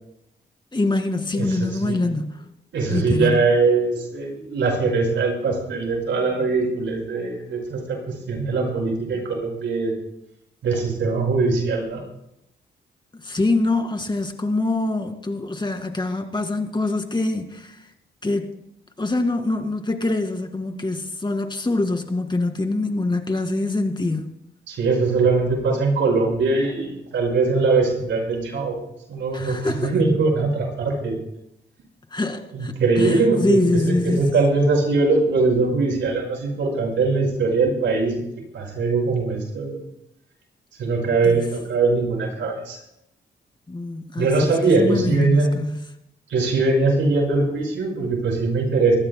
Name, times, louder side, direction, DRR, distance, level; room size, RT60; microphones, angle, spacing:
voice 1, 0.7-2.3 2.9-3.4 13.2-17.8 18.2-18.6 19.0-24.3 29.3-29.9 32.1-34.3 41.2-41.3 43.7-45.8, left 2 dB, 25° left, 5 dB, 2.3 m, -24 dB
voice 2, 1.3-2.0 2.7-9.9 10.6-12.0 24.7-28.8 29.1-31.2 32.5-38.1 38.5-39.8 40.8-42.8 44.2-45.5 46.3-49.0, right 3 dB, 85° right, 0 dB, 5.5 m, -21 dB
23.5 x 15.5 x 2.3 m, 0.81 s
cardioid pair, 70°, 19 cm